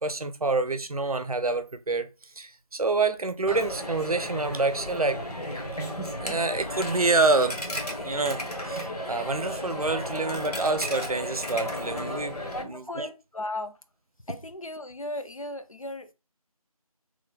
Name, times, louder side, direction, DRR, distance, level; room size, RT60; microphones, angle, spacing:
voice 1, 0.0-2.1 2.4-5.2 6.2-7.7 8.0-13.1, right 3 dB, 70° right, 0.5 m, -27 dB
Coin (dropping), 3.5-12.6, left 1 dB, 85° left, 1.1 m, -34 dB
voice 2, 12.5-13.8 14.3-16.1, left 2 dB, 60° left, 0.5 m, -36 dB
3.1 x 2.2 x 3.9 m
figure-of-eight pair, 170°, 19 cm